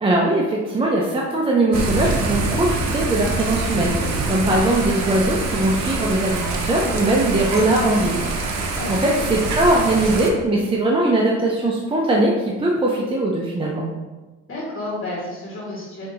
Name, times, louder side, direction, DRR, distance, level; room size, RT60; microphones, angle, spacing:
voice 1, 0.0-8.2 8.9-13.8, right 1 dB, 20° right, -2 dB, 0.5 m, -20 dB
Thunder / Rain, 1.7-10.3, right 3 dB, 65° right, 0.7 m, -25 dB
voice 2, 8.8-9.2 14.5-16.1, left 2 dB, 40° left, -6 dB, 1.4 m, -31 dB
5.7 x 2.8 x 2.6 m, 1.2 s
cardioid pair, 90°, 30 cm